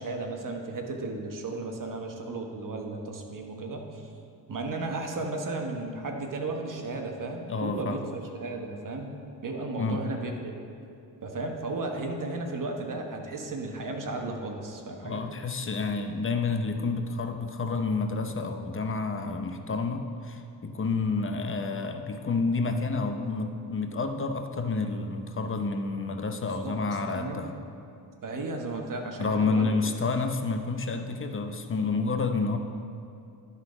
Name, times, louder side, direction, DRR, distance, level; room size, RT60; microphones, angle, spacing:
voice 1, 0.0-4.1 4.5-8.0 8.3-9.1 9.4-10.5 11.2-15.2 26.6-26.8 27.1-27.5 28.2-29.8, right 2 dB, 50° right, 3 dB, 1.2 m, -34 dB
voice 2, 7.5-8.1 9.8-10.0 15.0-27.5 29.2-32.6, left 4 dB, 30° left, 6 dB, 0.8 m, -29 dB
11.5 x 4.1 x 4.9 m, 2.6 s
cardioid pair, 65°, 42 cm